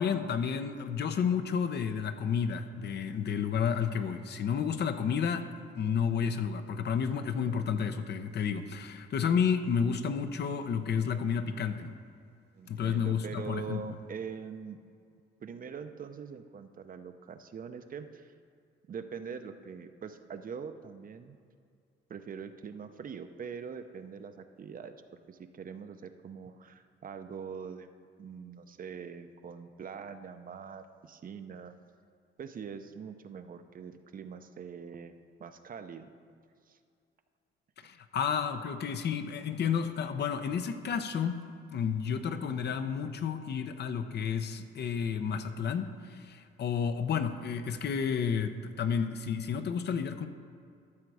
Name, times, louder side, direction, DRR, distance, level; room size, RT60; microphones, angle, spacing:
voice 1, 0.0-5.5 5.7-11.9 12.7-13.8 37.8-41.4 41.7-50.3, left 7 dB, 60° left, 9 dB, 0.8 m, -31 dB
voice 2, 12.6-14.8 15.4-18.3 18.9-21.4 22.1-25.0 25.3-27.9 28.2-31.8 32.4-36.2 36.7-36.8, right 6 dB, 45° right, 9 dB, 0.7 m, -43 dB
13.0 x 6.7 x 4.8 m, 2.3 s
cardioid pair, 90°, 20 cm